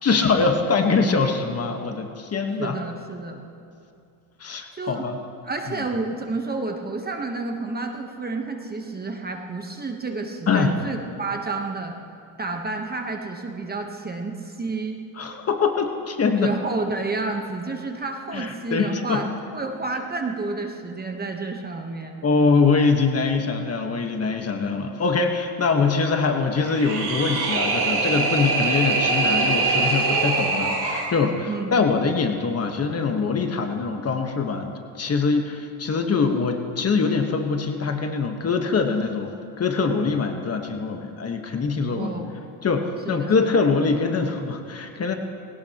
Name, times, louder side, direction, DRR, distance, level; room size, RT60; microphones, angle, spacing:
voice 1, 0.0-2.8 4.4-5.2 5.7-5.8 10.5-10.7 15.2-16.5 18.3-19.2 22.2-42.2 42.6-45.1, left 4 dB, 30° left, 4 dB, 1.3 m, -23 dB
voice 2, 2.6-3.4 4.7-5.1 5.4-11.9 12.4-15.0 16.4-22.2 31.5-31.8 41.9-42.3 43.0-43.5, right 3 dB, 20° right, 3 dB, 1.1 m, -30 dB
sound 1, 26.6-31.1, right 3 dB, 50° right, 4.2 m, -23 dB
20.0 x 17.5 x 3.0 m, 2.5 s
cardioid pair, 110°, 49 cm